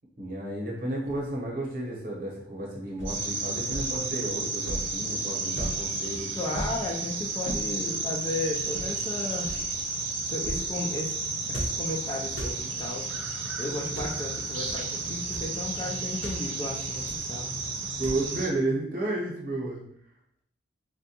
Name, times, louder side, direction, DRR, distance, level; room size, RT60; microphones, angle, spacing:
voice 1, 0.2-6.7 18.0-19.8, right 2 dB, 50° right, -3 dB, 0.8 m, -32 dB
sound 1, 1.0-1.5 3.0-3.2 3.7-4.0 4.6-5.0 5.6-5.9 6.5-6.8 7.4-7.7 8.7-9.0 9.4-9.7 10.4-10.7 11.5-11.9 12.3-12.6 13.8-14.2 14.7-14.8 15.2-15.5 16.2-16.4 17.0-17.3 18.0-18.4, right 1 dB, 90° left, 0.8 m, -36 dB
sound 2, 3.1-18.5, right 3 dB, 90° right, 0.6 m, -32 dB
voice 2, 6.4-9.5 10.3-11.1 11.5-13.1 13.6-17.5, left 2 dB, 20° left, -1 dB, 0.3 m, -34 dB
3.7 x 2.2 x 2.8 m, 0.70 s
head